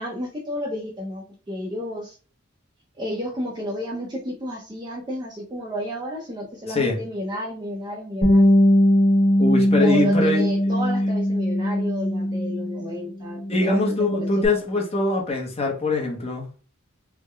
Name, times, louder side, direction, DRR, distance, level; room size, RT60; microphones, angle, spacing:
voice 1, 0.0-2.2 3.0-8.5 9.7-14.4, equal, 20° right, -3 dB, 0.5 m, -31 dB
Bass guitar, 8.2-12.9 13.2-14.5, equal, 70° left, 1.4 m, -20 dB
voice 2, 9.4-10.7 13.5-16.4, left 2 dB, 30° left, 0 dB, 0.7 m, -23 dB
3.5 x 2.1 x 3.2 m, 0.37 s
head